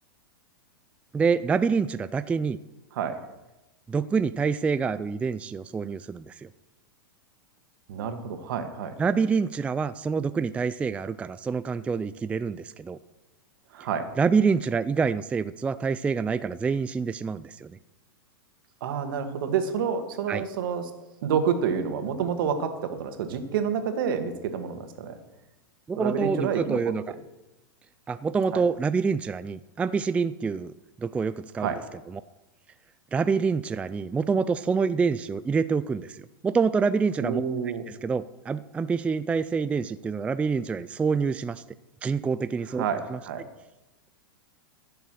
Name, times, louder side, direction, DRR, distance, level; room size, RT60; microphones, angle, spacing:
voice 1, 1.1-2.6 3.9-6.5 9.0-13.0 14.2-17.8 20.3-20.4 25.9-27.1 28.1-30.7 31.0-31.8 32.1-32.2 33.1-37.4 37.9-41.6 42.0-43.2, right 5 dB, 10° right, 13 dB, 0.3 m, -26 dB
voice 2, 7.9-8.9 13.7-14.1 18.8-20.9 21.2-25.2 26.0-26.8 28.5-28.6 31.6-31.8 37.2-37.8 42.7-43.4, right 7 dB, 65° right, 7 dB, 1.9 m, -28 dB
15.0 x 6.9 x 6.5 m, 0.99 s
hypercardioid pair, 125°, 12 cm